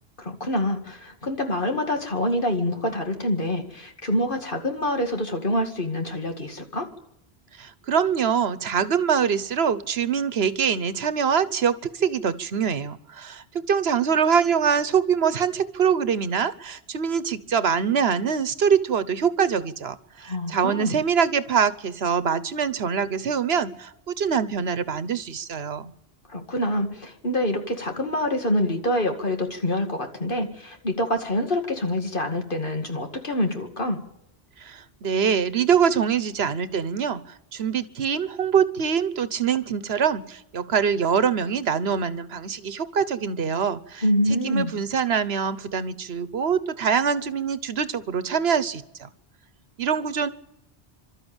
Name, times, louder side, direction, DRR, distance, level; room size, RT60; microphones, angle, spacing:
voice 1, 0.2-6.9 20.3-21.0 26.3-34.0 44.0-44.7, left 1 dB, 55° left, 5 dB, 2.5 m, -26 dB
voice 2, 7.6-25.9 34.6-37.2 37.5-44.0 44.3-49.1 49.8-50.3, right 7 dB, 80° right, 15 dB, 1.2 m, -24 dB
28.0 x 13.0 x 9.0 m, 0.82 s
omnidirectional pair, 1.0 m